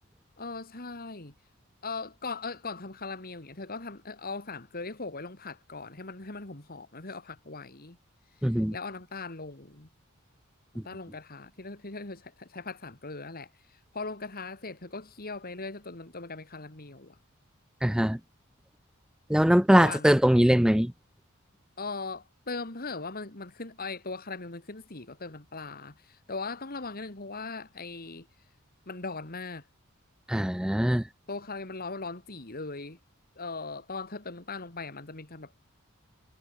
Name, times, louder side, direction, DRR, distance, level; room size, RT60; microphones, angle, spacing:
voice 1, 0.4-1.3 1.8-8.0 8.4-9.9 10.7-17.2 19.7-20.2 21.8-28.3 28.9-29.7 31.3-33.0 33.4-35.5, left 3 dB, 45° left, 2.6 m, -39 dB
voice 2, 8.4-8.8 10.8-10.9 17.8-18.2 19.3-20.9 30.3-31.0, equal, 5° right, 0.4 m, -22 dB
head